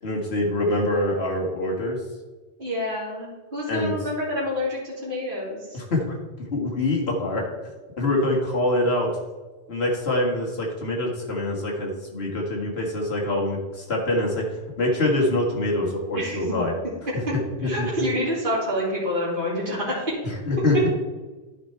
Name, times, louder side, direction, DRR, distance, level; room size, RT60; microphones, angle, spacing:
voice 1, 0.0-2.0 3.7-4.0 5.7-6.2 6.5-7.6 8.0-9.1 9.7-16.8 17.6-17.9 20.2-20.9, left 1 dB, 65° left, -2 dB, 2.0 m, -25 dB
voice 2, 2.6-5.8 16.1-16.4 17.6-20.1, left 1 dB, 50° right, -7 dB, 2.5 m, -27 dB
10.5 x 4.7 x 4.5 m, 1.2 s
omnidirectional pair, 1.1 m